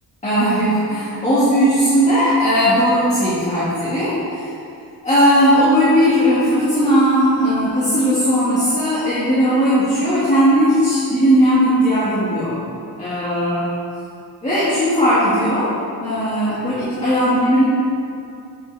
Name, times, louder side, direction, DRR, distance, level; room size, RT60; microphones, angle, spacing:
voice 1, 0.2-4.5 5.0-12.5 13.0-13.7 14.4-15.7 16.0-17.6, equal, 20° left, -11 dB, 1.8 m, -17 dB
7.7 x 7.5 x 3.4 m, 2.5 s
cardioid pair, 145°, 39 cm